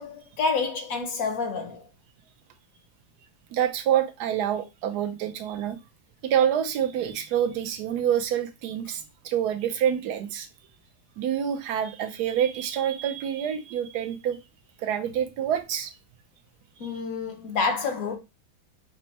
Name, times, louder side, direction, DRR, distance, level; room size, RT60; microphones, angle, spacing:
voice 1, 0.0-1.9 16.8-18.2, left 4 dB, 60° left, 1.1 m, -28 dB
voice 2, 3.5-5.8 6.2-10.5 11.2-14.4 14.8-15.9, right 9 dB, 70° right, 1.2 m, -27 dB
5.3 x 2.1 x 4.1 m
omnidirectional pair, 1.9 m